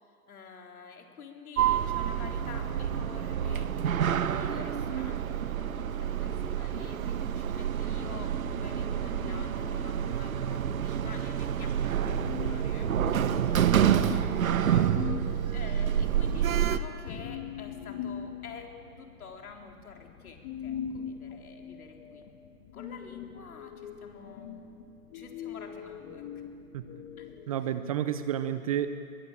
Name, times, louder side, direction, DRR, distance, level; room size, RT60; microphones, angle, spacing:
voice 1, 0.0-12.9 13.4-22.3 22.7-24.6 25.1-26.4 27.2-27.3, left 5 dB, 65° left, 3 dB, 4.0 m, -49 dB
Sliding door, 1.6-16.8, right 9 dB, 60° right, 1.3 m, -28 dB
sound 1, 8.3-27.4, left 8 dB, 30° left, 2.1 m, -43 dB
voice 2, 27.5-28.9, right 10 dB, 25° right, 11 dB, 0.6 m, -30 dB
22.5 x 21.0 x 8.9 m, 2.5 s
hypercardioid pair, 135°, 46 cm